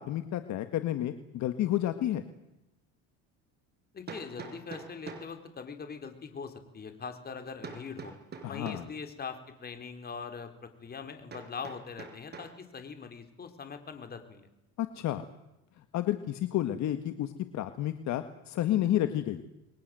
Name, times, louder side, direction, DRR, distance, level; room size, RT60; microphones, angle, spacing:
voice 1, 0.0-2.2 8.4-8.9 14.8-15.2 15.9-19.4, left 12 dB, 55° left, 9 dB, 1.9 m, -30 dB
Hammer, 2.5-2.6 4.1-5.4 7.6-8.9 11.3-12.6, right 5 dB, 30° right, 5.8 m, -44 dB
voice 2, 3.9-8.1 8.5-14.5, left 5 dB, 30° left, 7 dB, 4.3 m, -42 dB
29.5 x 22.5 x 7.9 m, 0.93 s
cardioid pair, 125°, 34 cm